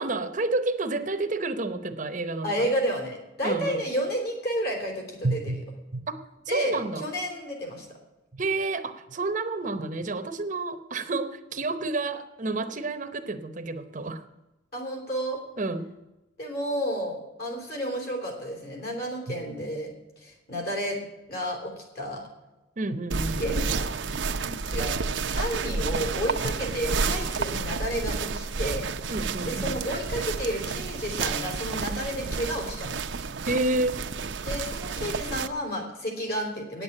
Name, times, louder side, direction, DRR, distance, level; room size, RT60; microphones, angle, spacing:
voice 1, 0.0-2.7 3.4-3.8 5.2-5.6 5.9-6.1 6.5-7.1 8.3-14.2 15.6-15.9 22.8-23.4 29.1-29.7 33.4-34.0, right 2 dB, 45° right, 10 dB, 0.8 m, -29 dB
voice 2, 2.4-5.4 6.5-6.7 7.0-8.0 14.7-15.4 16.4-19.9 20.2-21.0 21.3-22.3 23.4-23.9 24.4-25.0 25.3-28.9 29.4-32.9 34.4-36.8, equal, 55° left, 2 dB, 3.7 m, -31 dB
sound 1, 23.1-35.5, right 4 dB, 80° right, 0.7 m, -30 dB
9.4 x 8.2 x 8.7 m, 1.0 s
head